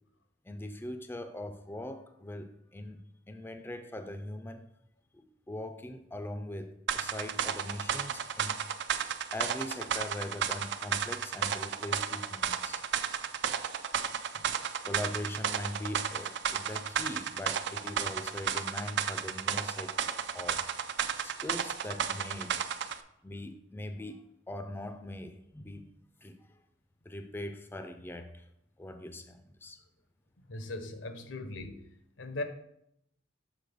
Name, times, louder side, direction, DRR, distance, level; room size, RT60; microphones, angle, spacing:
voice 1, 0.5-3.0 3.3-4.6 5.1-8.6 9.3-12.8 14.8-19.9 20.3-20.6 21.2-22.6 23.2-25.9 26.2-26.4 27.1-28.5 28.8-29.8, left 1 dB, 10° left, 7 dB, 0.4 m, -41 dB
sound 1, 6.9-23.0, right 8 dB, 60° right, 0.4 m, -33 dB
voice 2, 30.5-31.8 32.2-32.4, left 2 dB, 85° left, 8 dB, 0.9 m, -38 dB
6.6 x 4.2 x 5.2 m, 0.77 s
head